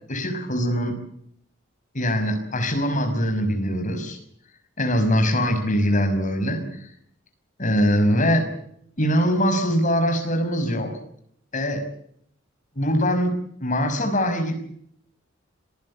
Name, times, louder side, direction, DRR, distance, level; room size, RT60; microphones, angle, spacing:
voice 1, 0.1-0.9 1.9-4.2 4.8-6.6 7.6-8.5 9.0-10.9 11.5-11.8 12.8-13.3 13.6-14.6, equal, 40° left, 5 dB, 5.7 m, -22 dB
27.0 x 15.5 x 8.5 m, 0.69 s
head